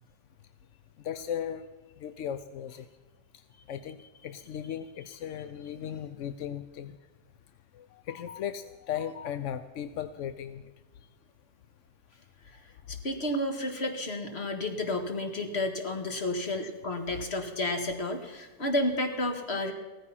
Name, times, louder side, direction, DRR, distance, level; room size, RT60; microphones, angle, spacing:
voice 1, 1.0-1.7 2.0-2.9 3.7-7.0 7.7-10.6 17.1-17.2, left 9 dB, 65° left, 11 dB, 0.8 m, -37 dB
voice 2, 12.9-19.7, left 1 dB, 40° left, 5 dB, 2.0 m, -31 dB
16.5 x 14.5 x 5.7 m, 1.2 s
omnidirectional pair, 1.8 m